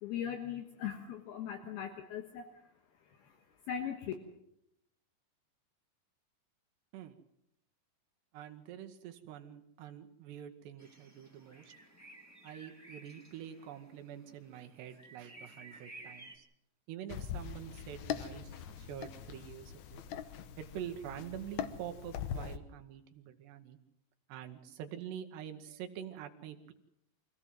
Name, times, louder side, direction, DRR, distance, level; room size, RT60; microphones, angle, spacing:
voice 1, 0.0-2.5 3.2-3.4 3.7-4.1, left 9 dB, 70° left, 5 dB, 3.1 m, -39 dB
voice 2, 8.3-11.7 12.4-16.5 16.9-20.0 20.6-23.8 24.3-26.7, right 10 dB, 80° right, 5 dB, 3.2 m, -46 dB
sound 1, 10.8-16.4, right 2 dB, 10° left, 0.8 m, -55 dB
sound 2, 17.1-22.6, left 9 dB, 90° left, 1.6 m, -42 dB
24.5 x 16.5 x 7.5 m, 0.81 s
omnidirectional pair, 4.9 m